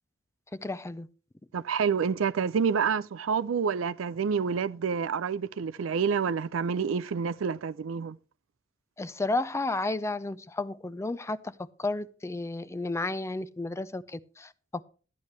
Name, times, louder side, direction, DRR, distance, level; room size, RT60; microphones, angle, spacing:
voice 1, 0.5-1.1 9.0-11.5 11.8-14.8, left 2 dB, 15° left, 0.4 m, -32 dB
voice 2, 1.5-8.2, right 6 dB, 75° right, 0.4 m, -28 dB
13.0 x 9.7 x 3.2 m
head